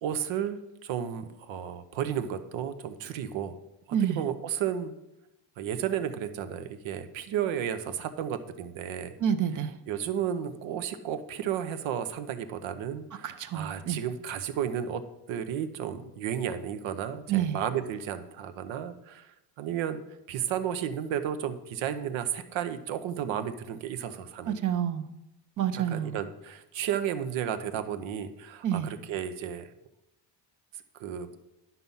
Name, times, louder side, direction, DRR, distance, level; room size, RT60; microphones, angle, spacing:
voice 1, 0.0-3.6 4.0-4.9 5.6-9.1 9.9-15.0 15.3-20.0 20.3-24.5 25.7-29.7 31.0-31.3, right 9 dB, 85° right, 11 dB, 1.0 m, -33 dB
voice 2, 9.2-9.8 13.2-14.0 17.3-17.6 24.5-25.0 25.6-26.2 28.6-28.9, right 9 dB, 45° right, 11 dB, 0.7 m, -28 dB
11.0 x 5.8 x 5.6 m, 0.90 s
cardioid pair, 160°, 46 cm